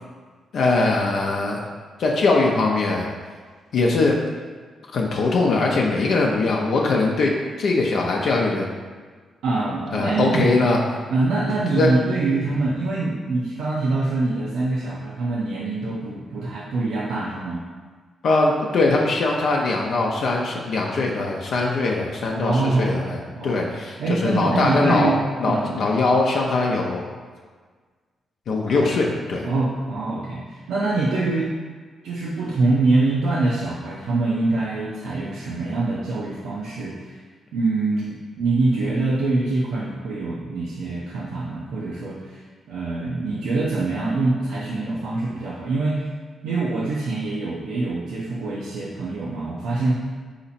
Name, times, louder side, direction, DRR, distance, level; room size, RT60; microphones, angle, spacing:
voice 1, 0.5-1.6 2.0-3.1 3.7-4.2 4.9-8.7 9.9-10.8 11.5-11.9 18.2-25.1 25.4-27.0 28.5-29.5, left 3 dB, 70° left, -1 dB, 0.5 m, -21 dB
voice 2, 9.4-10.5 11.1-17.6 22.4-23.6 24.0-25.8 28.7-29.2 29.4-31.5 32.0-37.2 37.5-46.1 46.4-50.0, right 3 dB, 90° right, -6 dB, 0.5 m, -24 dB
4.0 x 2.9 x 4.1 m, 1.5 s
cardioid pair, 70°, 0 cm